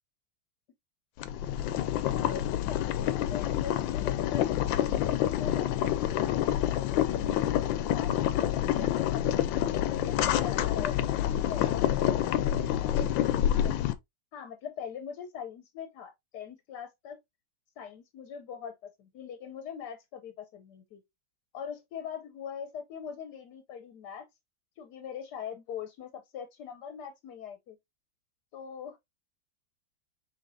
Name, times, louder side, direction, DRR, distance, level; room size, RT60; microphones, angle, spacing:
Boiling, 1.2-13.9, left 11 dB, 85° left, 1.3 m, -28 dB
voice 1, 2.2-9.5 9.9-13.9 14.3-17.2 17.8-21.0 21.5-24.3 24.8-27.8 28.5-29.0, left 7 dB, 65° left, 1.2 m, -42 dB
5.1 x 3.9 x 2.6 m
omnidirectional pair, 2.1 m